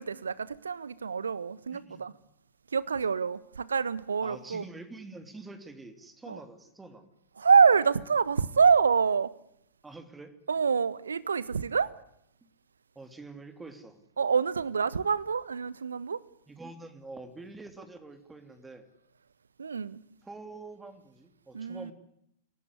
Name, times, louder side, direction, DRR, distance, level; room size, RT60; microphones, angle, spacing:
voice 1, 0.0-2.1 2.7-4.6 6.3-6.4 7.4-9.3 10.5-11.9 14.2-16.2 19.6-20.0 21.5-21.9, right 6 dB, 70° right, 1.2 m, -26 dB
voice 2, 1.7-2.0 4.2-7.1 9.8-10.3 12.9-14.0 16.5-18.9 20.2-21.9, right 3 dB, 10° right, 3.0 m, -46 dB
28.0 x 18.5 x 9.7 m
figure-of-eight pair, 95°, 0 cm